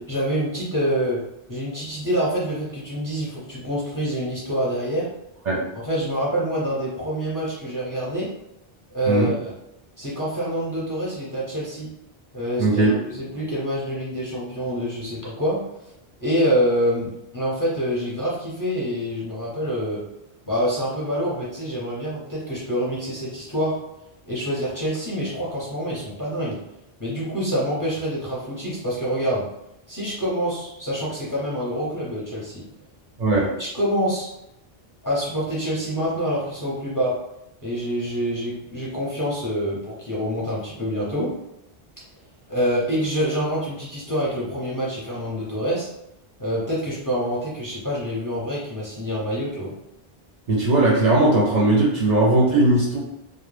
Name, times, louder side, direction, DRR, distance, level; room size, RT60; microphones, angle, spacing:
voice 1, 0.1-1.2 1.5-5.1 5.7-8.3 8.9-9.5 10.0-11.9 12.3-15.6 16.2-20.0 20.5-23.8 24.3-26.6 27.0-29.4 29.9-32.6 33.6-34.3 35.0-37.2 37.6-41.3 42.5-45.9 46.4-49.7, equal, 25° left, -7 dB, 0.6 m, -26 dB
voice 2, 12.6-13.0 33.2-33.5 50.5-53.0, right 2 dB, 55° right, -5 dB, 0.5 m, -18 dB
2.2 x 2.1 x 3.1 m, 0.86 s
omnidirectional pair, 1.0 m